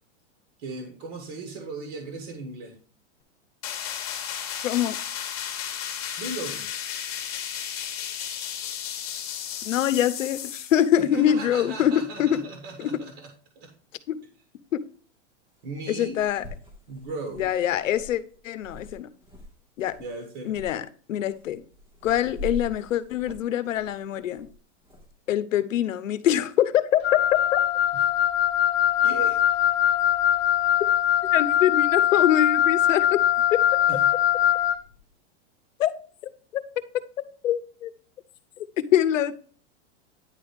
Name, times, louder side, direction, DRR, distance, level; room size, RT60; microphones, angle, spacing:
voice 1, 0.6-2.7 6.1-6.7 11.0-13.7 15.6-16.2 16.9-17.5 20.0-20.6 27.9-28.1 29.0-29.4 33.9-34.1, right 2 dB, 30° right, 1.3 m, -37 dB
sound 1, 3.6-10.8, left 9 dB, 30° left, 1.3 m, -34 dB
voice 2, 4.6-5.0 9.6-12.4 12.8-13.0 14.1-14.2 14.7-14.8 15.9-16.4 17.4-19.1 19.8-20.0 20.5-21.6 22.0-24.5 25.3-27.2 27.5-27.6 31.3-33.2 33.5-33.6 35.8-35.9 36.5-36.6 37.4-37.9 38.8-39.3, left 11 dB, 85° left, 0.9 m, -24 dB
sound 2, 13.7-13.8 15.6-15.7 16.0-19.5 19.8-20.1 20.5-20.7 21.2-25.1, left 1 dB, 5° right, 0.8 m, -42 dB
Wind instrument woodwind instrument, 27.0-34.8, left 11 dB, 55° left, 0.9 m, -22 dB
10.0 x 3.6 x 4.8 m
supercardioid pair, 175°, 37 cm